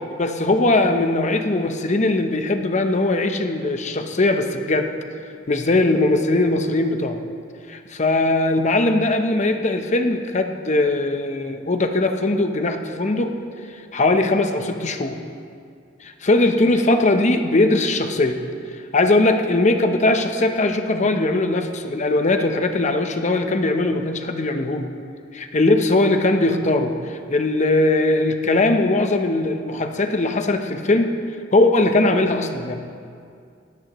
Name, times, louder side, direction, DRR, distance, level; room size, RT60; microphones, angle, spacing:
voice 1, 0.1-4.9 5.5-7.2 7.7-13.3 13.9-15.2 16.0-18.4 18.9-24.9 25.3-31.1 31.5-32.7, left 2 dB, 40° left, 6 dB, 0.9 m, -20 dB
18.5 x 14.5 x 3.1 m, 2.4 s
head